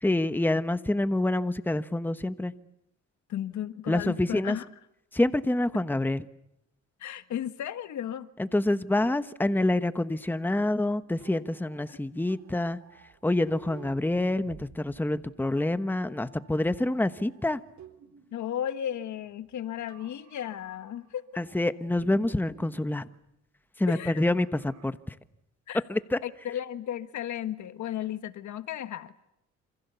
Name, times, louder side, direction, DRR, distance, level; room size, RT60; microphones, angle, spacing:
voice 1, 0.0-2.5 3.9-4.6 5.1-6.2 8.4-12.8 13.2-17.6 21.4-23.0 23.8-25.0 25.9-26.2, left 1 dB, 5° left, 1.2 m, -27 dB
voice 2, 3.3-4.7 7.0-8.3 11.9-12.2 18.3-21.2 23.9-24.2 25.7-25.8 26.2-29.1, left 10 dB, 70° left, 1.6 m, -34 dB
sound 1, 9.0-18.4 18.7-19.5 19.9-21.1 21.4-23.0 24.2-24.9, right 8 dB, 70° right, 3.8 m, -54 dB
28.0 x 27.0 x 7.0 m
cardioid pair, 90°, 30 cm